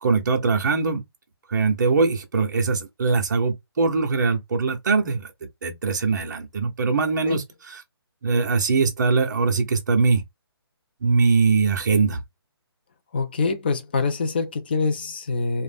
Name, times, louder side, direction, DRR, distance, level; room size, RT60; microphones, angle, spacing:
voice 1, 0.0-1.0 1.5-5.3 5.6-7.8 8.2-10.2 11.0-12.2, right 4 dB, 45° right, 0.7 m, -22 dB
voice 2, 13.1-15.6, left 4 dB, 25° left, 0.4 m, -25 dB
2.5 x 2.1 x 3.3 m
hypercardioid pair, 170°, 13 cm